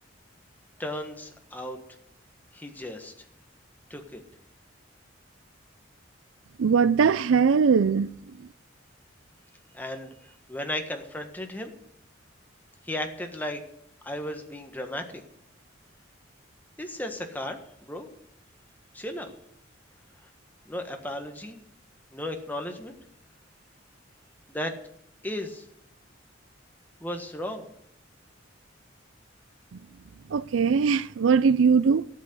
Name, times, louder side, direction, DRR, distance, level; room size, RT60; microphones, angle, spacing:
voice 1, 0.8-1.8 2.5-3.1 3.9-4.2 9.7-11.7 12.8-13.6 14.0-15.2 16.8-18.1 18.9-19.3 20.6-21.6 22.1-23.0 24.5-24.7 25.2-25.6 27.0-27.7, left 1 dB, 10° left, 1.5 m, -35 dB
voice 2, 6.6-8.5 29.7-29.8 30.3-32.1, right 6 dB, 85° right, 0.4 m, -21 dB
13.0 x 8.4 x 7.9 m
head